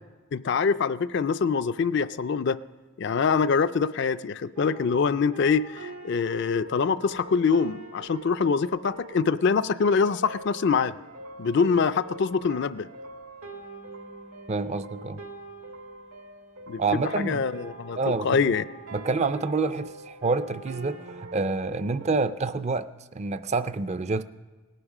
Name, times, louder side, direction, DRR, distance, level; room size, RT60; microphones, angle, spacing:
voice 1, 0.3-2.6 3.0-10.9 11.4-12.9 16.7-18.0 18.2-18.6, left 5 dB, 50° left, 13 dB, 0.4 m, -24 dB
sound 1, 4.6-22.1, right 3 dB, 90° right, 1.7 m, -44 dB
voice 2, 14.5-15.2 16.8-17.4 17.9-18.4 18.9-22.9 23.1-24.2, right 3 dB, 30° right, 13 dB, 0.4 m, -27 dB
18.0 x 10.0 x 6.0 m, 1.3 s
head